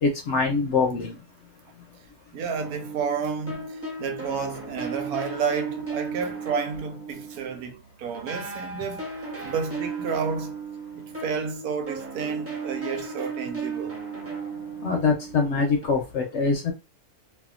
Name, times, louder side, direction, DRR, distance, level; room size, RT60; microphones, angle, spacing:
voice 1, 0.0-1.2 14.8-16.7, left 4 dB, 65° left, 0.7 m, -24 dB
voice 2, 2.3-10.5 11.2-13.9, right 6 dB, 80° right, 1.1 m, -31 dB
sound 1, 2.6-7.8 8.1-15.9, right 4 dB, 15° right, 0.5 m, -35 dB
2.7 x 2.3 x 2.4 m
omnidirectional pair, 1.6 m